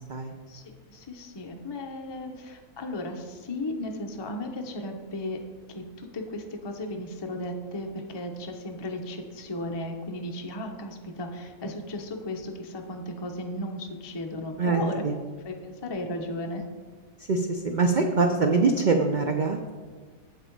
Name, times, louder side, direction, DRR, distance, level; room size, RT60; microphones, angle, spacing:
voice 1, 0.9-5.4 5.7-15.0 15.4-16.6, left 1 dB, 25° left, 3 dB, 0.5 m, -35 dB
voice 2, 14.6-15.2 17.3-19.7, right 4 dB, 80° right, 4 dB, 0.4 m, -24 dB
8.1 x 7.0 x 4.5 m, 1.5 s
omnidirectional pair, 1.6 m